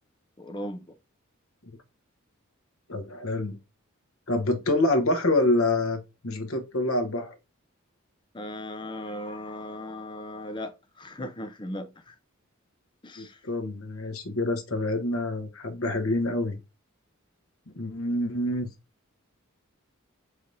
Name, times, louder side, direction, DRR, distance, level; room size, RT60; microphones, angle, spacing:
voice 1, 0.4-1.0 8.3-12.2 13.0-13.4, left 1 dB, 20° left, 0.6 m, -37 dB
voice 2, 2.9-3.6 4.3-7.3 13.2-16.6 17.7-18.7, left 2 dB, 80° left, 1.1 m, -27 dB
4.6 x 3.4 x 2.6 m
head